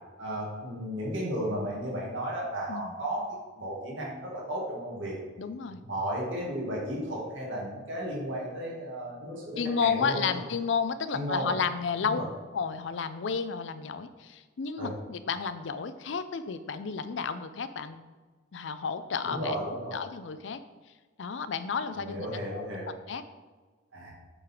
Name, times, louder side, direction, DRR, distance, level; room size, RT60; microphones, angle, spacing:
voice 1, 0.2-3.3 3.6-5.2 5.8-10.2 11.1-11.5 12.0-12.3 14.8-14.9 19.2-20.0 21.9-22.9 23.9-24.1, equal, 80° right, -4 dB, 2.1 m, -34 dB
voice 2, 5.4-5.8 9.6-12.2 12.5-18.0 18.5-19.6 19.9-20.6 21.2-22.7 23.1-23.2, left 6 dB, 70° left, 11 dB, 0.5 m, -32 dB
7.9 x 3.9 x 4.4 m, 1.3 s
head